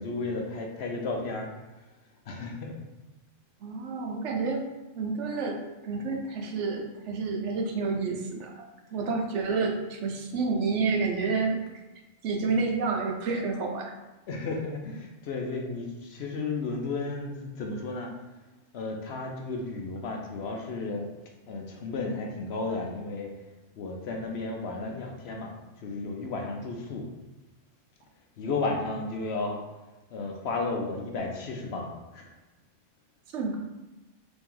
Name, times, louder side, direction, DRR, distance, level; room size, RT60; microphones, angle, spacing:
voice 1, 0.0-1.5 2.3-2.8 14.3-18.1 18.7-21.1 21.5-23.3 23.8-27.1 28.4-29.6 30.1-32.3, left 3 dB, 65° left, 1 dB, 0.8 m, -33 dB
voice 2, 3.6-4.6 5.0-11.6 12.2-13.9 33.3-33.5, right 4 dB, 75° right, 2 dB, 1.0 m, -29 dB
3.4 x 3.0 x 3.7 m, 1.1 s
omnidirectional pair, 1.3 m